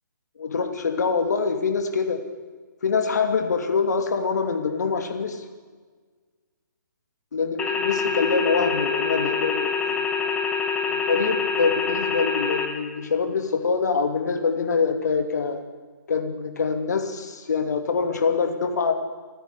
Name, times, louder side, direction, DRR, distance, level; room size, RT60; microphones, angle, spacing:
voice 1, 0.4-2.2 2.8-5.4 7.3-10.3 10.9-15.6 16.1-18.9, left 5 dB, 55° left, 5 dB, 2.8 m, -25 dB
sound 1, 7.6-12.7, left 6 dB, 10° left, 1.8 m, -25 dB
28.0 x 10.0 x 9.8 m, 1.5 s
figure-of-eight pair, 135°, 11 cm